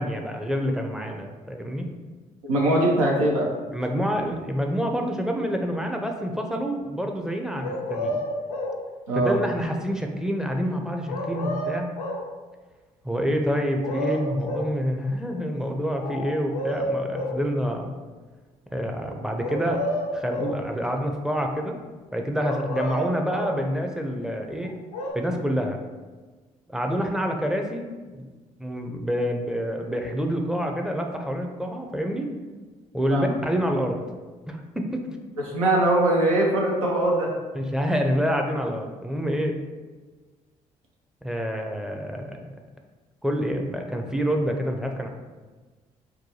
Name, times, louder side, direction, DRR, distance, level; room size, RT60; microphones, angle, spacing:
voice 1, 0.0-1.9 3.7-8.2 9.1-11.9 13.0-17.9 18.7-19.8 20.1-21.8 22.1-24.8 25.1-25.8 26.7-27.9 28.1-28.3 28.6-32.3 32.9-34.0 34.4-35.1 37.5-39.6 41.2-42.4 43.2-45.1, equal, 5° right, 3 dB, 0.5 m, -27 dB
voice 2, 2.4-3.5 9.1-9.3 33.1-33.3 35.5-37.3, right 1 dB, 85° right, -2 dB, 0.6 m, -21 dB
sound 1, 7.6-8.8 11.1-12.3 13.5-14.7 16.0-17.4 19.4-20.6 22.4-23.6 24.6-25.1, left 1 dB, 80° left, 0.5 m, -30 dB
4.6 x 2.2 x 2.8 m, 1.3 s
figure-of-eight pair, 45°, 18 cm